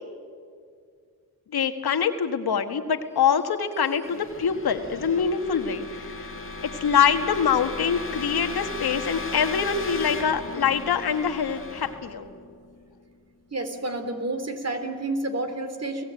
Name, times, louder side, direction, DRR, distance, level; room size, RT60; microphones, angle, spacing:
voice 1, 1.5-6.3 6.8-12.3, left 7 dB, 80° left, 7 dB, 1.7 m, -24 dB
sound 1, 3.3-13.1, left 3 dB, 35° left, 2.4 m, -37 dB
voice 2, 13.5-16.0, right 2 dB, 40° right, 7 dB, 3.5 m, -30 dB
30.0 x 17.5 x 9.1 m, 2.1 s
cardioid pair, 55°, 37 cm